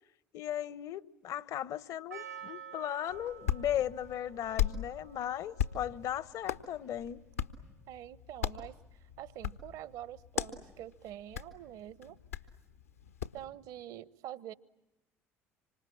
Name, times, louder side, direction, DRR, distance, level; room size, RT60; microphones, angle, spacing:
voice 1, 0.3-7.2, left 11 dB, 50° left, 0.9 m, -36 dB
Percussion, 2.1-7.3, right 9 dB, 80° right, 1.6 m, -51 dB
Hands, 3.1-13.4, left 9 dB, 80° left, 1.2 m, -39 dB
voice 2, 7.9-8.8 9.2-12.2 13.3-14.5, right 12 dB, 55° right, 0.9 m, -45 dB
26.5 x 25.5 x 8.6 m
figure-of-eight pair, 60°, 8 cm